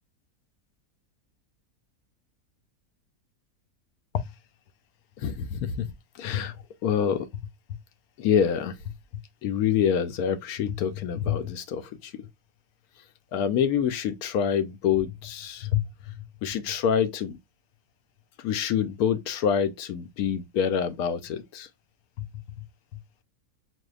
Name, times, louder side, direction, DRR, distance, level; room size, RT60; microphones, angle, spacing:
voice 1, 5.2-5.8 6.2-6.5 6.8-7.3 8.2-8.7 9.4-12.3 13.3-16.1 16.4-17.4 18.4-21.7 22.2-22.3, left 8 dB, 80° left, 1.1 m, -26 dB
6.2 x 2.7 x 2.3 m
omnidirectional pair, 1.6 m